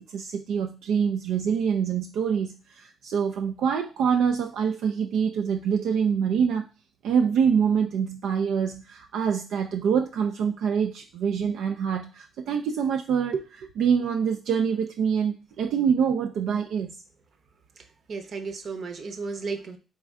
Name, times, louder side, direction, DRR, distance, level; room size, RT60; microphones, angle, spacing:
voice 1, 0.0-6.7 7.0-17.0, right 7 dB, 80° right, 5 dB, 0.4 m, -25 dB
voice 2, 18.1-19.8, right 4 dB, 55° right, 7 dB, 0.8 m, -34 dB
4.3 x 3.3 x 3.5 m, 0.33 s
cardioid pair, 90°, 0 cm